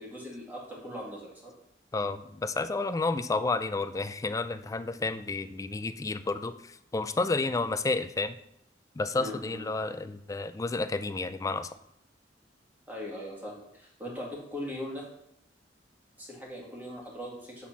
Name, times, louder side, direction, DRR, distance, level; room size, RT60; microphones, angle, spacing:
voice 1, 0.0-1.5 9.1-9.7 12.9-15.1 16.2-17.7, left 1 dB, 10° right, -3 dB, 2.0 m, -40 dB
voice 2, 1.9-8.4 9.0-11.7, left 3 dB, 20° left, 11 dB, 0.3 m, -31 dB
7.3 x 4.2 x 5.8 m, 0.75 s
head